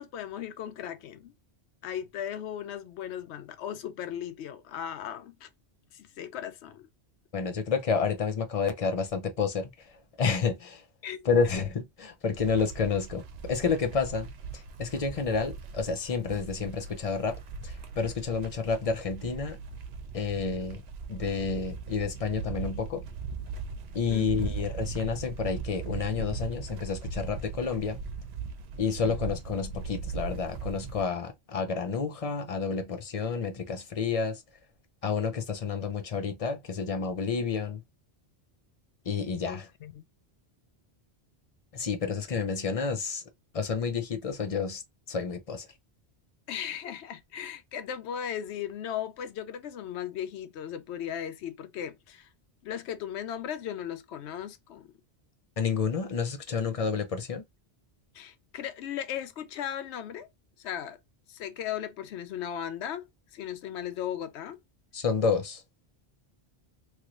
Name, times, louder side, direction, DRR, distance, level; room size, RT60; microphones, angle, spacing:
voice 1, 0.0-1.3 1.8-5.5 5.9-6.9 11.0-11.3 24.1-24.5 29.0-29.4 39.5-40.0 46.5-52.3 52.6-54.9 58.1-60.3 60.6-61.0 61.3-64.6, left 9 dB, 90° left, 0.8 m, -37 dB
voice 2, 7.3-9.7 10.2-10.8 11.2-19.6 20.1-20.8 21.1-23.0 23.9-28.0 28.8-34.4 35.0-37.8 39.1-39.7 41.7-43.2 43.5-44.8 45.1-45.7 55.6-57.4 64.9-65.6, left 5 dB, 40° left, 0.6 m, -30 dB
sound 1, 12.3-31.0, right 4 dB, 75° right, 0.9 m, -39 dB
3.1 x 2.6 x 3.0 m
omnidirectional pair, 1.1 m